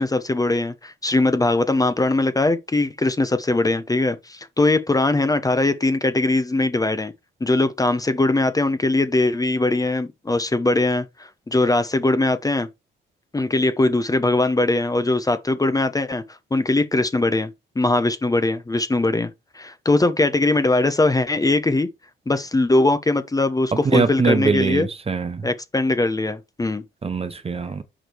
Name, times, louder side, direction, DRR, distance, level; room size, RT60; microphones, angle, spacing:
voice 1, 0.0-7.1 7.4-12.7 13.3-16.2 16.5-17.5 17.7-19.3 19.5-21.9 22.3-24.9 25.4-26.8, left 2 dB, 20° left, 1.0 m, -21 dB
voice 2, 23.9-25.4 27.0-27.8, right 4 dB, 30° right, 1.0 m, -22 dB
6.2 x 5.1 x 4.6 m
cardioid pair, 90°, 20 cm